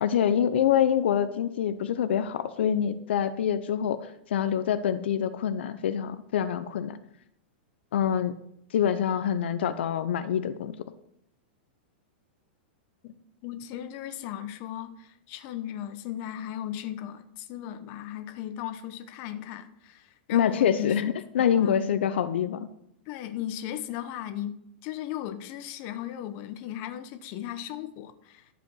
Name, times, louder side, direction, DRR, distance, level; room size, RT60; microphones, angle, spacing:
voice 1, 0.0-7.0 7.9-8.3 8.7-10.8 20.3-22.7, left 9 dB, 75° left, 11 dB, 0.7 m, -26 dB
voice 2, 13.4-21.0 21.4-21.7 23.1-24.6 24.8-28.5, left 11 dB, 40° left, 9 dB, 0.9 m, -36 dB
12.5 x 5.1 x 6.2 m, 0.74 s
supercardioid pair, 155°, 6 cm